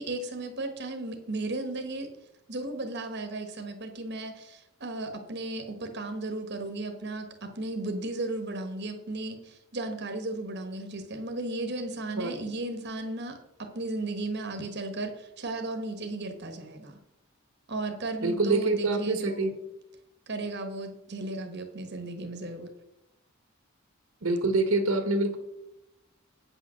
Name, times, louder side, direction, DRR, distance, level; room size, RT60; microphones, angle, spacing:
voice 1, 0.0-2.1 2.5-17.0 17.7-19.5 20.3-22.7, right 2 dB, 55° right, 5 dB, 1.3 m, -35 dB
voice 2, 18.2-19.5 24.2-25.4, right 3 dB, 75° right, 7 dB, 1.4 m, -25 dB
8.8 x 6.1 x 6.3 m, 0.88 s
head